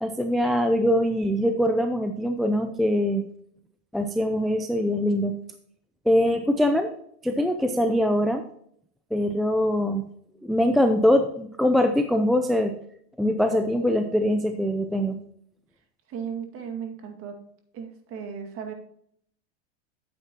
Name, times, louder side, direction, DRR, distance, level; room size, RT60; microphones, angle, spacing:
voice 1, 0.0-3.3 3.9-5.3 6.1-6.9 7.2-8.4 9.1-10.0 10.4-12.7 13.2-15.2, equal, ahead, 7 dB, 0.4 m, -23 dB
voice 2, 16.1-17.4 17.7-18.7, right 7 dB, 40° right, 4 dB, 2.2 m, -36 dB
9.1 x 8.1 x 2.9 m, 0.67 s
supercardioid pair, 125°, 34 cm